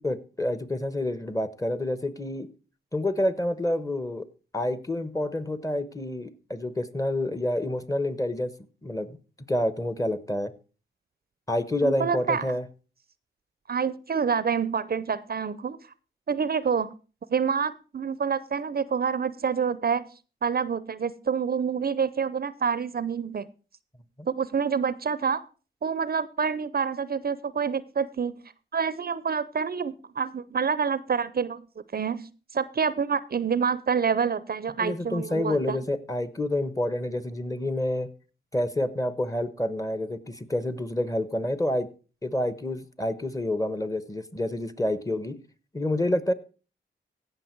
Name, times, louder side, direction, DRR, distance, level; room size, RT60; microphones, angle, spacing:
voice 1, 0.0-2.5 2.9-4.2 4.5-8.5 8.8-9.2 9.5-10.5 11.5-12.7 34.8-38.1 38.5-41.9 42.2-45.4 45.7-46.3, left 1 dB, 15° left, 13 dB, 1.1 m, -28 dB
voice 2, 11.8-12.5 13.7-15.8 16.3-16.9 17.3-20.1 20.4-23.5 24.3-25.4 25.8-28.4 28.7-31.6 31.9-35.8, right 6 dB, 50° right, 17 dB, 0.6 m, -27 dB
16.0 x 5.9 x 4.5 m, 0.36 s
cardioid pair, 60°, 20 cm